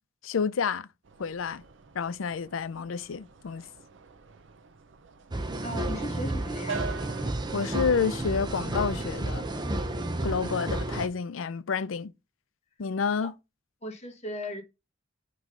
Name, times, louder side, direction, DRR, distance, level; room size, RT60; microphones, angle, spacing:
voice 1, 0.2-0.9 1.2-1.6 1.9-3.6 7.5-9.4 10.2-12.1 12.8-13.3, left 5 dB, 75° left, 0.5 m, -29 dB
sound 1, 1.0-10.5, right 5 dB, 65° right, 0.6 m, -45 dB
sound 2, 5.3-11.1, right 1 dB, 20° right, 0.7 m, -31 dB
voice 2, 5.6-6.8 13.2-13.3 13.8-14.6, equal, 35° left, 1.4 m, -37 dB
6.2 x 3.2 x 5.3 m
head